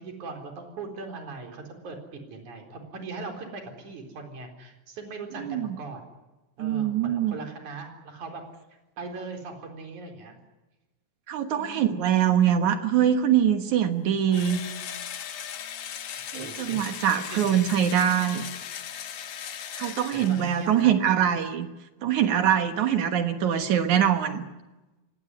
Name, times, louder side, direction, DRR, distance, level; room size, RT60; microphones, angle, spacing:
voice 1, 0.0-6.0 6.6-8.4 9.0-10.4 11.6-12.0 16.3-17.6 20.1-21.4, right 3 dB, 45° right, 4 dB, 5.2 m, -40 dB
voice 2, 5.4-5.7 6.6-7.4 11.3-14.6 16.3-18.4 19.7-21.7 22.0-24.4, right 9 dB, 65° right, 8 dB, 2.0 m, -23 dB
Engine / Drill, 14.3-20.9, left 9 dB, 75° left, 1.5 m, -38 dB
24.5 x 19.0 x 9.7 m, 1.1 s
omnidirectional pair, 5.0 m